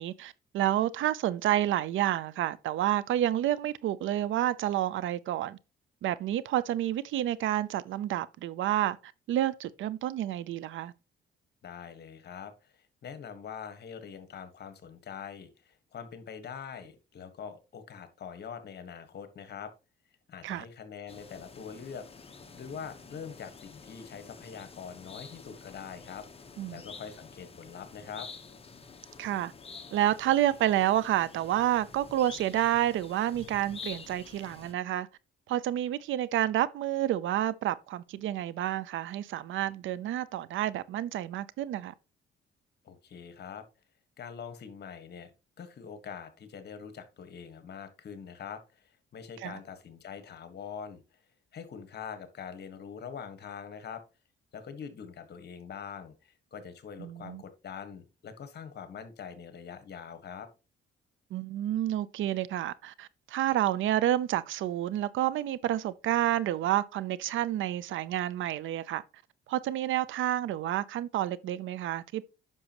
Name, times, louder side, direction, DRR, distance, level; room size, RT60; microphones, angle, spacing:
voice 1, 0.0-5.6 6.0-9.0 9.3-10.9 20.4-20.6 26.6-26.8 29.2-29.5 29.9-35.1 35.5-41.9 49.4-49.6 57.0-57.4 61.3-69.0 69.5-72.2, right 12 dB, 80° right, 0.6 m, -29 dB
voice 2, 11.6-19.7 20.3-22.0 22.5-26.3 26.7-28.3 42.8-43.6 44.2-45.3 45.6-51.0 51.5-54.0 54.5-60.5, left 7 dB, 55° left, 1.6 m, -44 dB
sound 1, 21.1-34.7, left 5 dB, 30° left, 1.2 m, -48 dB
9.8 x 6.1 x 3.0 m
cardioid pair, 90°, 20 cm